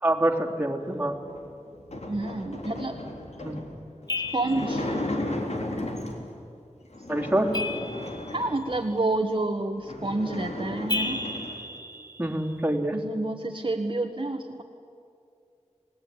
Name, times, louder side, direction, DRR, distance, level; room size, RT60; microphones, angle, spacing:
voice 1, 0.0-1.2 3.4-3.6 7.1-7.5 12.2-13.0, right 1 dB, 15° right, 0 dB, 3.3 m, -25 dB
sound 1, 1.2-6.4 6.9-9.0 9.5-9.6 9.8-11.6, left 1 dB, 65° left, 3.6 m, -35 dB
voice 2, 2.1-3.0 4.3-4.9 8.3-11.3 12.9-14.6, right 2 dB, 45° right, 3 dB, 1.5 m, -29 dB
sound 2, 4.1-4.9 7.5-8.6 10.9-12.6, left 2 dB, 35° left, 2.0 m, -33 dB
29.5 x 19.0 x 9.8 m, 2.5 s
wide cardioid pair, 50°, 12 cm